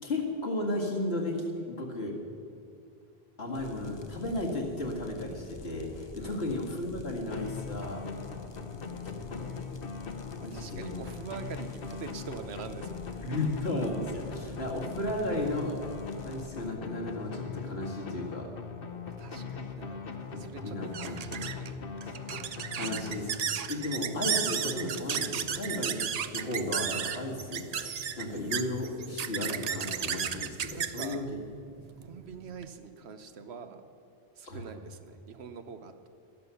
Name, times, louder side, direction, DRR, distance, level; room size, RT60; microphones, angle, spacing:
voice 1, 0.0-2.2 3.4-8.0 9.0-9.5 10.4-10.9 13.2-15.9 16.2-18.5 20.3-21.3 22.7-31.2 34.4-34.6, left 1 dB, 80° left, -1 dB, 2.2 m, -34 dB
sound 1, 3.5-16.7, left 3 dB, 30° left, 0.5 m, -48 dB
sound 2, 7.3-23.8, left 5 dB, 60° left, 1.1 m, -40 dB
voice 2, 10.4-13.2 19.1-20.0 20.4-21.8 30.7-31.3 32.0-33.8 34.4-36.1, right 6 dB, 85° right, 9 dB, 1.1 m, -44 dB
sound 3, 19.8-32.7, right 8 dB, 50° right, 0.5 m, -34 dB
12.5 x 11.0 x 6.9 m, 2.5 s
omnidirectional pair, 1.1 m